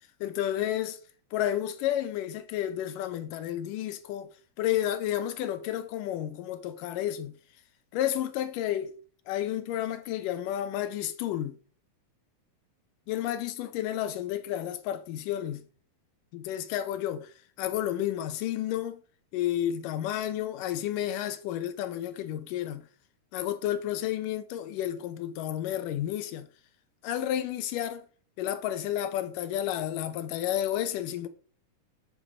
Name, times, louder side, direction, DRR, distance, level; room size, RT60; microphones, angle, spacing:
voice 1, 0.2-1.0 1.3-4.3 4.6-7.3 7.9-8.9 9.3-11.6 13.1-15.6 16.3-17.3 17.6-19.0 19.3-22.8 23.3-26.5 27.0-28.1 28.4-31.3, left 11 dB, 80° left, 2.4 m, -31 dB
7.5 x 6.7 x 5.2 m
omnidirectional pair, 3.9 m